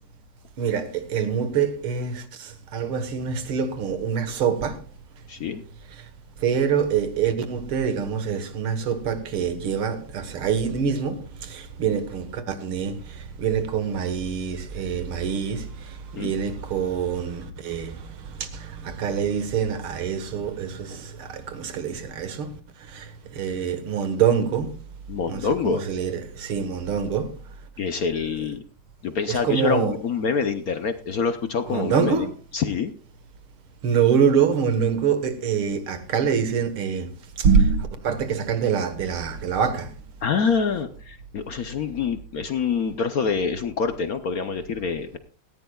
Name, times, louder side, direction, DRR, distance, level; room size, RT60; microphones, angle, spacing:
voice 1, 0.6-4.8 6.0-6.1 6.4-24.8 25.3-27.4 29.3-30.0 31.7-32.3 33.8-39.9, right 7 dB, 85° right, 2.3 m, -25 dB
voice 2, 5.3-5.6 16.2-16.3 25.1-25.8 27.8-28.6 29.0-32.9 40.2-45.2, left 5 dB, 60° left, 1.0 m, -26 dB
17.5 x 14.5 x 2.3 m
omnidirectional pair, 2.3 m